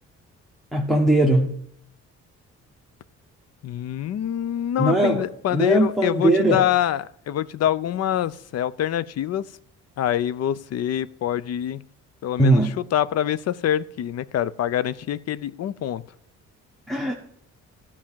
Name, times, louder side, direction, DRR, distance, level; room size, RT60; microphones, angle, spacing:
voice 1, 0.7-1.5 4.8-5.2 5.5-6.7 12.4-12.7 16.9-17.1, right 1 dB, ahead, 1 dB, 1.1 m, -19 dB
voice 2, 3.6-9.5 10.0-11.8 12.2-16.0, left 11 dB, 55° left, 18 dB, 0.5 m, -25 dB
13.0 x 4.9 x 7.4 m, 0.67 s
cardioid pair, 90°, 30 cm